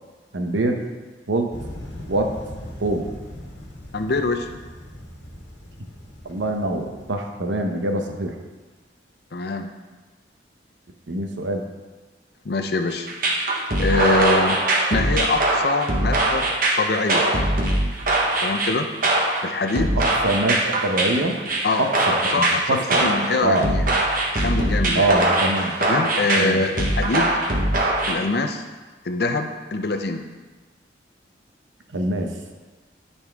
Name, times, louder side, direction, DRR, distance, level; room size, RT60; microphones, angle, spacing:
voice 1, 0.3-0.9 1.3-1.5 2.1-2.3 2.8-3.1 6.2-8.3 11.1-11.6 20.0-21.4 21.8-23.1 23.4-23.7 24.9-25.8 26.4-26.6 31.9-32.3, right 1 dB, 90° right, 4 dB, 0.9 m, -24 dB
sound 1, 1.5-7.1, left 1 dB, 80° left, 1.5 m, -39 dB
voice 2, 3.9-4.5 9.3-9.7 12.4-13.1 13.8-14.6 14.9-16.5 16.8-17.3 18.4-18.9 19.4-19.9 21.6-21.9 22.3-22.6 23.0-23.9 24.4-25.1 25.8-27.4 28.1-28.6 29.0-30.2, left 3 dB, 55° left, 6 dB, 0.5 m, -24 dB
sound 2, 13.1-28.2, right 1 dB, 50° right, 1.1 m, -22 dB
12.0 x 4.2 x 3.5 m, 1.3 s
head